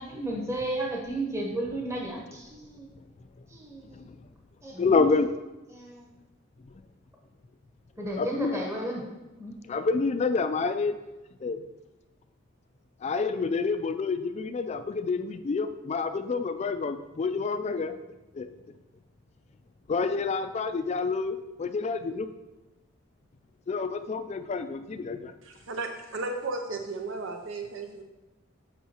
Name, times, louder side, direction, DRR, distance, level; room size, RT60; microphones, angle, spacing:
voice 1, 0.0-2.9 3.5-4.0 4.6-4.9 5.7-6.1 8.0-9.0 9.4-9.6, right 1 dB, 15° right, -1 dB, 0.9 m, -33 dB
voice 2, 4.8-5.3 8.2-8.6 9.7-11.0 11.4-11.6 13.0-17.9 18.3-18.5 19.9-22.3 23.7-25.3, left 4 dB, 35° left, 10 dB, 0.3 m, -28 dB
voice 3, 25.4-28.0, right 3 dB, 80° right, 5 dB, 0.6 m, -34 dB
8.2 x 5.5 x 2.9 m, 1.1 s
head